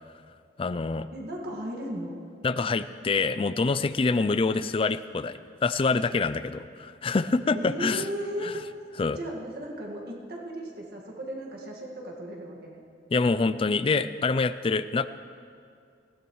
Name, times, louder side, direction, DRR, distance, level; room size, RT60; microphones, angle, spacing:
voice 1, 0.6-1.1 2.4-8.0 8.4-8.5 9.0-9.2 13.1-15.1, left 4 dB, 30° left, 13 dB, 0.4 m, -26 dB
voice 2, 1.1-2.2 7.5-8.6 9.2-12.8, equal, 60° right, -1 dB, 1.8 m, -36 dB
19.5 x 16.0 x 3.2 m, 2.3 s
head